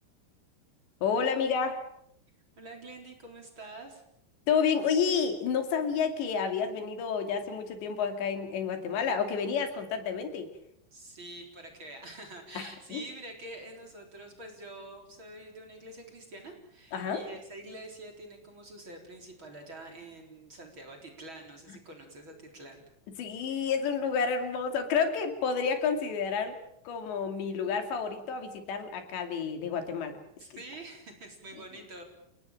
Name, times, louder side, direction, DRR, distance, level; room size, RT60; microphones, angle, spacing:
voice 1, 1.0-1.8 4.5-10.5 12.6-13.0 16.9-17.2 23.2-26.5 26.9-30.2 30.5-30.6, left 6 dB, 80° left, 7 dB, 4.9 m, -30 dB
voice 2, 2.6-4.0 10.9-22.8 30.4-32.0, right 1 dB, 30° right, 3 dB, 4.3 m, -46 dB
29.5 x 18.0 x 7.5 m, 0.73 s
omnidirectional pair, 5.0 m